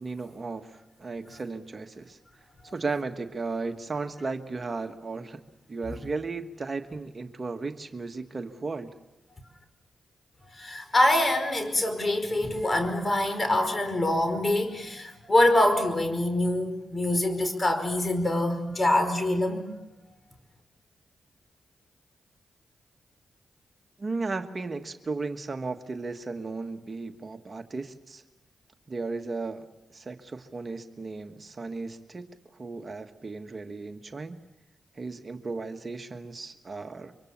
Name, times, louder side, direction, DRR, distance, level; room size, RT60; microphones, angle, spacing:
voice 1, 0.0-2.2 2.6-5.4 5.7-9.0 24.0-28.2 28.9-29.6 29.9-34.4 34.9-37.1, right 3 dB, 45° right, 7 dB, 1.5 m, -35 dB
voice 2, 10.6-19.6, left 1 dB, 35° left, 8 dB, 5.1 m, -25 dB
24.5 x 24.5 x 7.3 m, 1.0 s
supercardioid pair, 45°, 0 cm